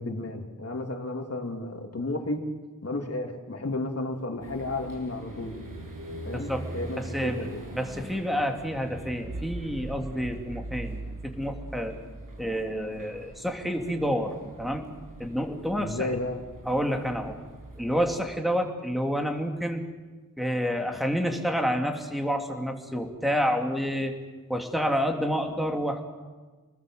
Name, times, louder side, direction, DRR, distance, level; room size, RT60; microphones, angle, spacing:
voice 1, 0.0-2.5 2.8-5.6 6.2-7.6 15.7-16.4, left 2 dB, 50° left, 3 dB, 3.2 m, -33 dB
sound 1, 4.4-18.1, right 1 dB, 80° right, 7.3 m, -41 dB
voice 2, 6.3-6.6 7.0-7.4 7.7-12.0 12.4-14.9 15.2-16.1 16.7-17.4 17.8-19.8 20.4-24.1 24.5-26.0, equal, ahead, 3 dB, 3.1 m, -29 dB
29.0 x 20.5 x 7.9 m, 1.3 s
wide cardioid pair, 95°, 33 cm